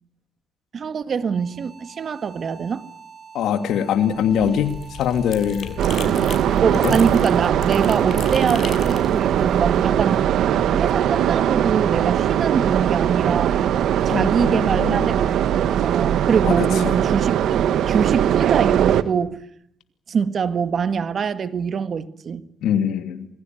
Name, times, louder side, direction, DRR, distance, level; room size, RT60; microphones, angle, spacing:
voice 1, 0.7-2.8 6.6-10.2 10.7-13.6 14.1-19.4 20.1-22.4, right 6 dB, 50° right, 1.8 m, -24 dB
sound 1, 1.2-18.1, right 6 dB, 35° right, 6.7 m, -45 dB
voice 2, 3.3-6.3 6.8-7.0 14.1-15.2 16.4-17.0 22.6-23.3, left 8 dB, 80° left, 2.6 m, -23 dB
sound 2, 4.1-10.2, left 6 dB, 60° left, 5.9 m, -36 dB
sound 3, 5.8-19.0, right 10 dB, 75° right, 1.4 m, -20 dB
28.0 x 20.5 x 9.4 m
cardioid pair, 90°, 0 cm